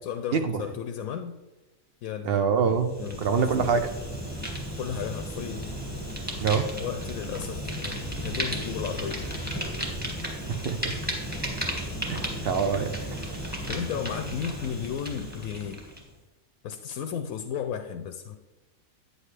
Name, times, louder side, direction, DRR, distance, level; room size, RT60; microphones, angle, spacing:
voice 1, 0.0-1.3 2.0-2.4 2.7-3.7 4.8-5.7 6.8-9.2 13.7-15.8 16.6-18.4, left 8 dB, 75° left, 6 dB, 1.0 m, -34 dB
voice 2, 2.2-2.9 3.2-3.9 6.4-6.7 10.5-10.9 12.1-12.9, right 6 dB, 60° right, 8 dB, 0.6 m, -25 dB
Fire, 2.7-16.1, equal, 5° right, 1.6 m, -34 dB
9.7 x 8.0 x 3.2 m, 1.1 s
omnidirectional pair, 1.5 m